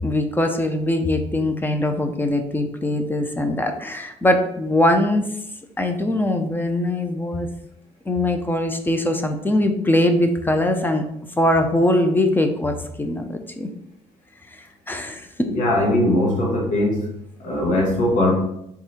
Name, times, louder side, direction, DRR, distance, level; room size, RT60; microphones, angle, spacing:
voice 1, 0.0-5.2 5.8-7.5 8.1-11.0 11.4-12.7 13.0-13.7 14.9-15.3, left 1 dB, 15° left, 6 dB, 0.7 m, -21 dB
voice 2, 15.4-17.0 17.4-18.3, left 1 dB, 70° left, -2 dB, 1.5 m, -20 dB
3.6 x 3.3 x 4.2 m, 0.79 s
supercardioid pair, 75°, 13 cm